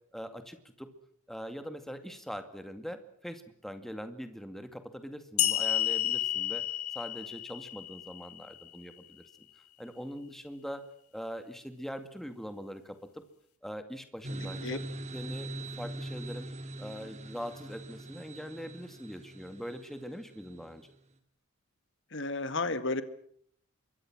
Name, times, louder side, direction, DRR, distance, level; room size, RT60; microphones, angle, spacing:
voice 1, 0.1-0.9 1.3-6.6 6.9-9.2 9.8-10.8 11.1-13.2 13.6-14.8 15.1-16.5 16.8-20.9, equal, ahead, 8 dB, 2.2 m, -42 dB
sound 1, 5.4-8.8, left 12 dB, 90° left, 3.0 m, -31 dB
sound 2, 14.2-20.7, right 1 dB, 30° right, 2.7 m, -42 dB
voice 2, 22.1-23.0, left 3 dB, 55° left, 12 dB, 2.0 m, -32 dB
27.0 x 23.5 x 6.2 m, 0.65 s
head